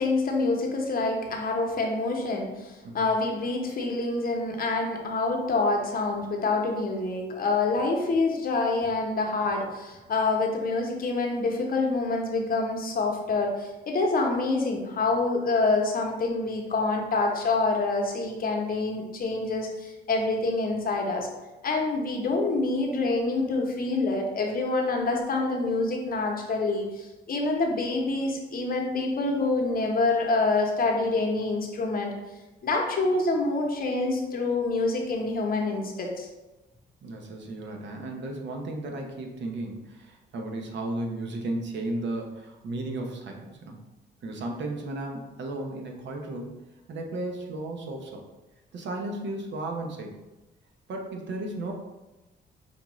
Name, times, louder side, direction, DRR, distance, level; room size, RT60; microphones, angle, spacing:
voice 1, 0.0-21.3 21.6-32.1 32.6-36.3, left 3 dB, 50° left, 1 dB, 0.9 m, -26 dB
voice 2, 37.0-43.8 44.2-46.6 46.9-48.2 48.7-50.2 50.9-51.7, right 2 dB, 65° right, 2 dB, 0.8 m, -34 dB
5.3 x 2.4 x 3.0 m, 1.1 s
cardioid pair, 90°, 20 cm